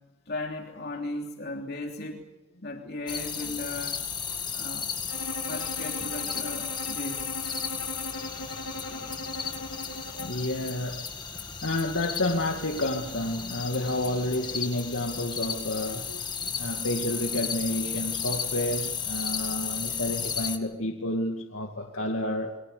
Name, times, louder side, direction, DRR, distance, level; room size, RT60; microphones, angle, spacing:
voice 1, 0.3-2.2 2.6-4.0 4.5-4.9 5.5-7.5, left 2 dB, 45° left, 3.2 m, -36 dB
sound 1, 3.1-20.6, left 6 dB, 20° left, 2.0 m, -34 dB
Bowed string instrument, 5.1-10.5, left 2 dB, 90° left, 2.7 m, -39 dB
voice 2, 10.1-11.1 11.6-16.2 16.6-22.6, left 1 dB, 70° left, 2.4 m, -30 dB
29.5 x 23.5 x 6.9 m
head